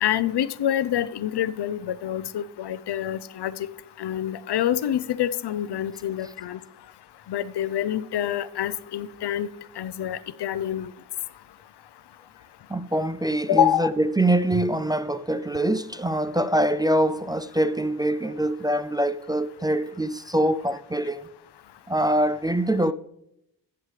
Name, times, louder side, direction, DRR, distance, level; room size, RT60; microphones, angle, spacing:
voice 1, 0.0-3.5 4.0-6.6 7.3-9.5 9.8-10.9 13.5-13.9, left 10 dB, 65° left, 0.7 m, -26 dB
voice 2, 12.7-21.3 21.9-22.9, right 1 dB, 10° right, 0.3 m, -24 dB
14.5 x 7.3 x 3.3 m
cardioid pair, 65°, 44 cm